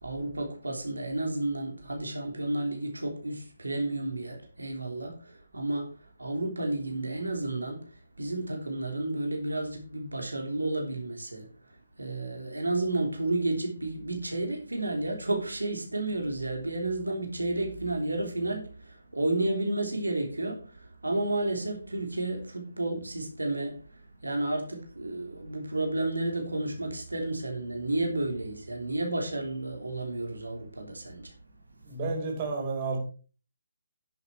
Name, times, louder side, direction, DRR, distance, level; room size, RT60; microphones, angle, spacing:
voice 1, 0.0-7.8 8.2-31.3, right 2 dB, 85° right, 3.3 m, -32 dB
voice 2, 31.8-33.0, right 3 dB, 30° right, 4.3 m, -31 dB
11.0 x 7.6 x 4.5 m
figure-of-eight pair, 145°, 0 cm